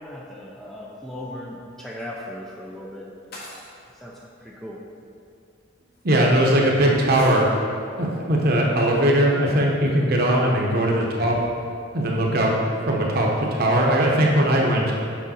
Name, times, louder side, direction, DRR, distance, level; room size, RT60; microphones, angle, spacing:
voice 1, 0.0-3.1 3.9-4.8 10.2-10.6, left 1 dB, ahead, -3 dB, 0.5 m, -37 dB
sound 1, 1.9-2.1 3.3-3.9 5.1-5.2 5.9-6.0 7.1-7.4, left 1 dB, 50° left, 1.4 m, -42 dB
voice 2, 6.0-7.4 8.0-11.4 11.9-12.5 12.8-14.8, right 1 dB, 50° right, -1 dB, 0.9 m, -20 dB
6.3 x 5.0 x 4.3 m, 2.4 s
head